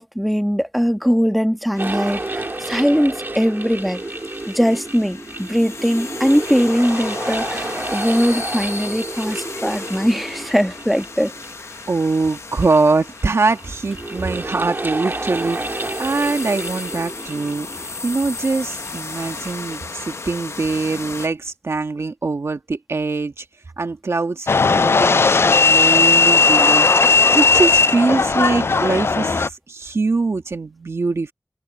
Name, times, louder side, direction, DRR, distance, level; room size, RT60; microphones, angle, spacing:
voice 1, 0.0-4.0 4.5-11.3, equal, ahead, 1.3 m, -20 dB
sound 1, 1.7-21.3, left 3 dB, 80° left, 1.0 m, -35 dB
sound 2, 1.8-20.4, right 2 dB, 45° right, 2.8 m, -31 dB
voice 2, 11.9-23.5 23.8-26.9 27.3-31.3, right 3 dB, 75° right, 1.8 m, -23 dB
sound 3, 24.5-29.5, left 4 dB, 60° left, 0.3 m, -15 dB
cardioid pair, 45°, 5 cm